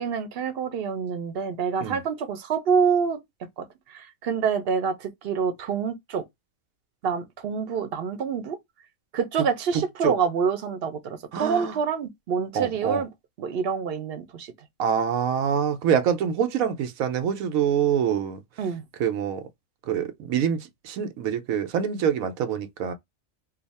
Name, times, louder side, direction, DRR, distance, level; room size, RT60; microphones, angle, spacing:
voice 1, 0.0-3.2 3.6-6.2 7.0-8.6 9.1-13.1 13.4-14.5 18.6-18.8, right 6 dB, 55° right, 0.8 m, -27 dB
voice 2, 9.7-10.1 11.3-11.8 12.5-13.0 14.8-18.4 19.0-19.4 19.9-22.9, right 8 dB, 85° right, 1.1 m, -25 dB
2.8 x 2.4 x 4.0 m
omnidirectional pair, 1.4 m